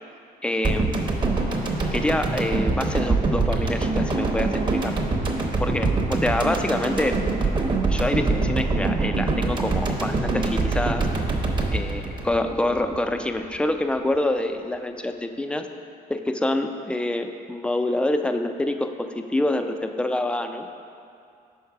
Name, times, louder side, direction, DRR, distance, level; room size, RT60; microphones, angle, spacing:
voice 1, 0.4-1.3 1.9-5.0 5.6-7.2 7.9-11.0 11.7-15.6 16.1-20.7, left 1 dB, 5° left, 6 dB, 0.3 m, -26 dB
sound 1, 0.6-13.0 13.3-13.4, right 3 dB, 25° right, 0.8 m, -24 dB
5.4 x 4.7 x 5.7 m, 2.5 s
cardioid pair, 110°, 17 cm